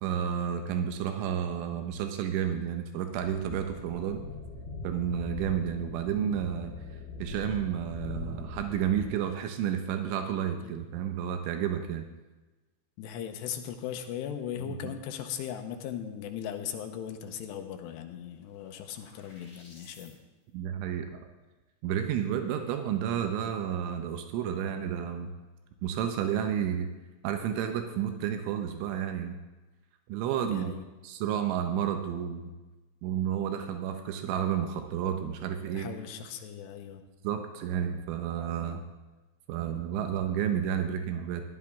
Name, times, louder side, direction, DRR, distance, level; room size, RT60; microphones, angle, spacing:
voice 1, 0.0-4.2 4.8-6.7 7.2-12.0 14.8-14.9 20.5-21.3 21.8-25.3 25.8-26.9 27.2-29.4 30.1-30.7 31.0-32.5 33.0-35.9 37.2-38.8 39.5-41.4, right 9 dB, 85° right, 6 dB, 3.2 m, -31 dB
sound 1, 3.1-9.1, left 3 dB, 50° left, 4.4 m, -41 dB
voice 2, 13.0-20.2 30.4-30.8 35.7-37.0, left 9 dB, 80° left, 5 dB, 2.7 m, -38 dB
sound 2, 18.0-20.2, left 2 dB, 35° left, 3.6 m, -58 dB
15.0 x 11.0 x 3.5 m, 1.2 s
omnidirectional pair, 5.3 m